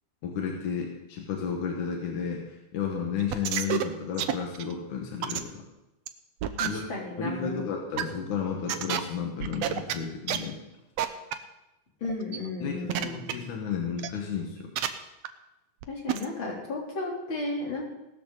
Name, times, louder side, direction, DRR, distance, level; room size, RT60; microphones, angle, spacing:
voice 1, 0.2-5.5 6.6-6.8 7.2-10.6 12.6-14.7, left 6 dB, 70° left, 0 dB, 3.1 m, -32 dB
sound 1, 3.2-3.8 4.2-4.7 5.2-5.4 6.1-6.2 6.4-6.7 7.5-7.6 8.0-8.1 8.7-9.0 9.4-9.9 10.3-10.4 11.0-11.1 11.3-11.4 12.0-12.4 12.9-13.3 14.0-14.1 14.8-14.9 15.2-15.3 15.8-15.9 16.1-16.2, right 11 dB, 70° right, 1.7 m, -28 dB
voice 2, 6.6-7.6 12.0-13.3 15.9-17.9, left 2 dB, 35° left, -3 dB, 4.3 m, -34 dB
18.5 x 13.0 x 4.1 m, 0.96 s
omnidirectional pair, 3.7 m